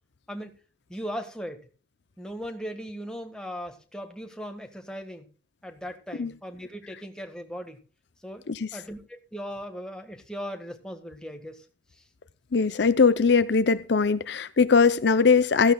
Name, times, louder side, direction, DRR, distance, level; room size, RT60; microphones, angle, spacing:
voice 1, 0.9-1.7 2.2-5.3 5.6-7.8 8.2-8.4 8.7-11.6, equal, 5° left, 4 dB, 1.5 m, -38 dB
voice 2, 12.5-15.7, left 5 dB, 60° left, 13 dB, 0.6 m, -21 dB
16.0 x 14.0 x 2.3 m, 0.37 s
head